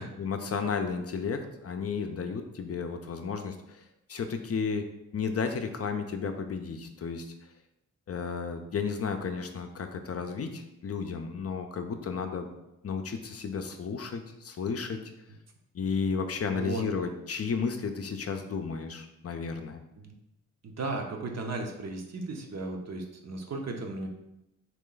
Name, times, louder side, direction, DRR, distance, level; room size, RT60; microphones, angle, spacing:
voice 1, 0.0-3.8 4.1-4.8 5.1-7.3 8.1-12.5 12.8-15.0 15.7-19.8, left 5 dB, 50° left, 6 dB, 0.5 m, -33 dB
voice 2, 16.5-16.9 20.0-20.1 20.6-24.1, right 3 dB, 55° right, 2 dB, 0.7 m, -35 dB
3.2 x 3.0 x 3.8 m, 0.88 s
cardioid pair, 65°, 32 cm